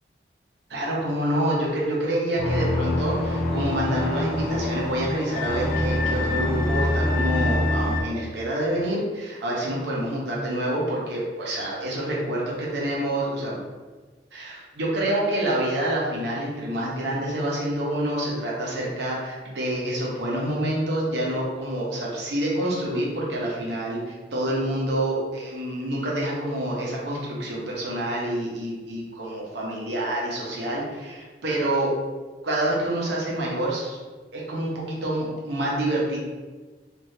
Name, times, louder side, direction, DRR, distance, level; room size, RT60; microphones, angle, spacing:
voice 1, 0.7-13.6 14.3-24.0 24.3-31.9 32.4-34.0 34.3-36.2, right 1 dB, 70° right, -4 dB, 0.9 m, -27 dB
sound 1, 2.4-8.0, left 1 dB, 55° left, 0.5 m, -25 dB
3.3 x 2.6 x 2.7 m, 1.3 s
head